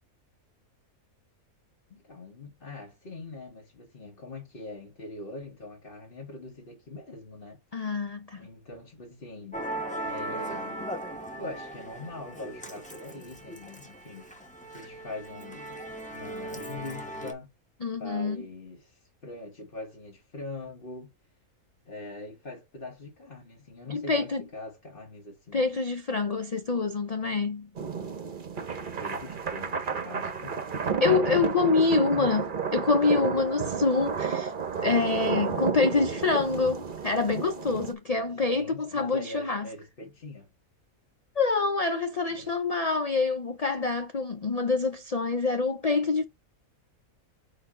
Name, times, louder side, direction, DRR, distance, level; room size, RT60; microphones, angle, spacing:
voice 1, 1.9-7.6 8.3-9.6 10.0-10.9 11.4-14.3 14.7-15.8 16.1-17.5 18.0-21.1 21.9-25.7 29.0-30.6 31.8-32.3 38.2-40.5 42.3-42.6, left 2 dB, 40° left, 1.6 m, -42 dB
voice 2, 7.7-8.4 17.8-18.4 23.9-24.4 25.5-27.7 31.0-32.4 32.7-34.5 34.8-39.7 41.4-46.2, left 4 dB, 70° left, 0.3 m, -26 dB
Musical instrument, 9.5-17.3, right 1 dB, 5° left, 1.0 m, -38 dB
sound 1, 27.8-37.9, right 6 dB, 40° right, 1.0 m, -31 dB
4.5 x 4.3 x 4.8 m
omnidirectional pair, 1.5 m